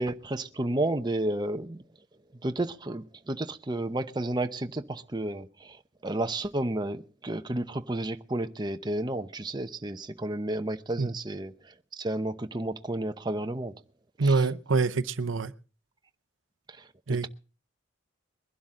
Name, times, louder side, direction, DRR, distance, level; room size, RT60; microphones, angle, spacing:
voice 1, 0.0-1.8 2.4-5.8 6.0-13.7 14.2-14.5 16.8-16.9, right 1 dB, 20° right, 0.8 m, -32 dB
voice 2, 14.2-15.5 17.1-17.3, right 4 dB, 80° right, 0.8 m, -25 dB
22.0 x 12.0 x 3.7 m
head